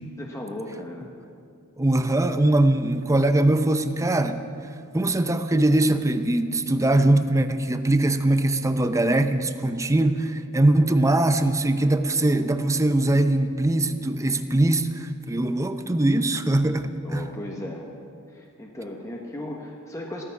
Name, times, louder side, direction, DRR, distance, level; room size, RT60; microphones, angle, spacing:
voice 1, 0.2-1.1 17.0-17.9 18.3-20.2, left 1 dB, 15° left, -1 dB, 1.2 m, -36 dB
voice 2, 1.8-4.4 4.9-17.3, right 1 dB, 15° right, 9 dB, 0.7 m, -21 dB
16.5 x 13.5 x 5.9 m, 2.3 s
head